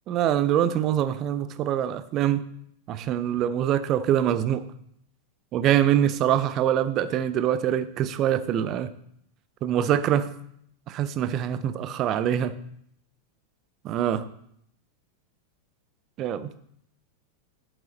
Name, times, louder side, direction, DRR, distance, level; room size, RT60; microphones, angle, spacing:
voice 1, 0.1-2.5 2.9-4.6 5.5-8.9 9.6-10.3 10.9-12.6 13.8-14.3 16.2-16.5, right 10 dB, 35° right, 14 dB, 0.6 m, -24 dB
7.9 x 7.8 x 4.2 m, 0.70 s
figure-of-eight pair, 90°, 0 cm